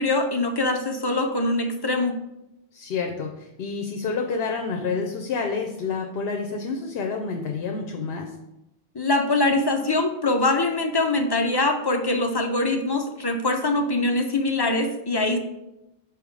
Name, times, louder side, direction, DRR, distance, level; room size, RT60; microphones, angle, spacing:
voice 1, 0.0-2.2 8.9-15.4, left 2 dB, 35° left, 4 dB, 0.4 m, -23 dB
voice 2, 2.7-8.3, left 4 dB, 70° left, 3 dB, 0.8 m, -29 dB
5.9 x 3.5 x 4.7 m, 0.91 s
omnidirectional pair, 1.1 m